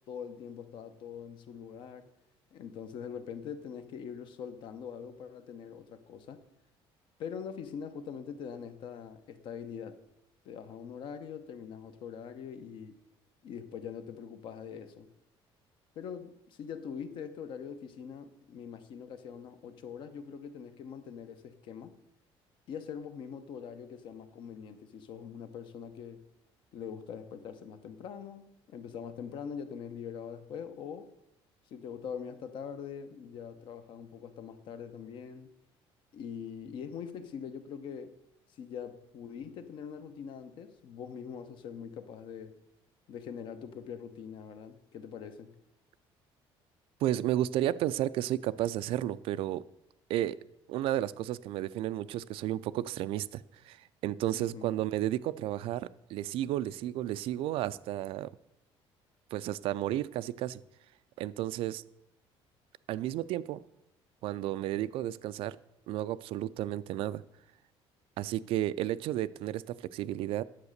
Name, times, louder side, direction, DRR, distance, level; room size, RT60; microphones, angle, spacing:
voice 1, 0.1-2.1 2.5-6.4 7.2-10.0 10.4-13.0 13.4-15.1 15.9-21.9 22.7-26.2 26.7-31.1 31.7-35.5 36.1-38.1 38.5-42.5 43.1-45.5 54.3-54.7, left 7 dB, 55° left, 0.9 m, -43 dB
voice 2, 47.0-49.6 50.1-58.3 59.3-60.6 61.2-61.8 62.9-63.6 64.2-65.6 65.9-67.2 68.2-70.4, right 13 dB, 65° right, 0.4 m, -32 dB
9.7 x 7.3 x 6.5 m
cardioid pair, 170°, 10 cm